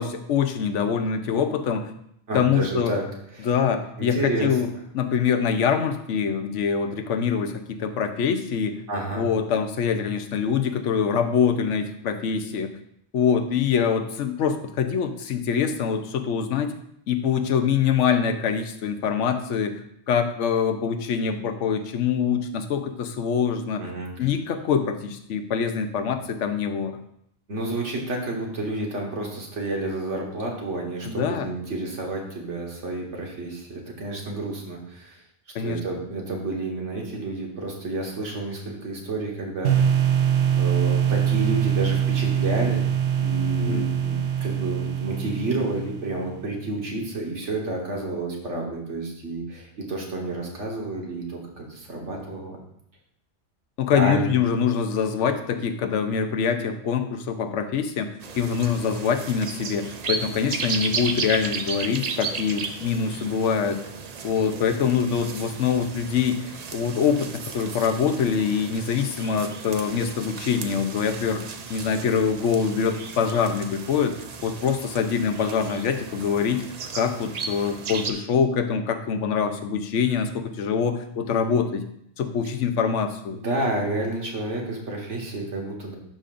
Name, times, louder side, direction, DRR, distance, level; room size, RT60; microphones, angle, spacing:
voice 1, 0.0-1.9 2.3-2.9 3.4-8.7 9.1-12.7 13.1-16.7 17.1-19.7 20.1-23.8 24.2-27.0 31.0-31.5 35.5-35.8 43.6-43.9 53.8-63.8 64.2-71.4 71.7-74.1 74.4-76.6 76.9-81.8 82.2-83.4, left 7 dB, 90° left, 8 dB, 1.0 m, -24 dB
voice 2, 2.3-3.0 3.3-3.5 4.0-4.6 8.9-9.3 23.8-24.3 27.5-35.2 35.6-40.1 40.5-42.9 43.2-52.6 53.9-54.3 83.3-85.9, right 2 dB, 85° right, -1 dB, 1.8 m, -30 dB
sound 1, 39.6-46.5, right 9 dB, 70° right, 1.0 m, -23 dB
sound 2, 58.2-78.1, right 5 dB, 50° right, 0.5 m, -35 dB
11.5 x 5.2 x 2.5 m, 0.72 s
omnidirectional pair, 1.2 m